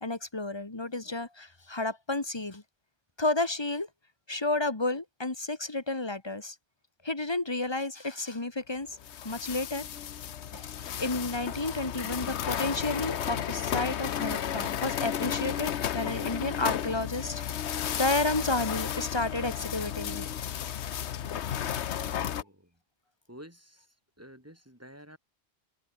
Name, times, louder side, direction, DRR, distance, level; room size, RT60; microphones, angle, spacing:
voice 1, 0.0-2.6 3.2-3.9 4.3-6.5 7.0-8.9 9.2-9.9 10.5-10.6 11.0-17.4 17.9-20.3, left 2 dB, 25° left, 1.6 m, -31 dB
sound 1, 9.0-22.4, left 9 dB, 80° left, 1.1 m, -33 dB
sound 2, 11.4-21.6, left 1 dB, 55° left, 7.5 m, -61 dB
voice 2, 22.0-22.8 23.3-25.2, equal, 15° right, 6.8 m, -51 dB
open air
omnidirectional pair, 1.1 m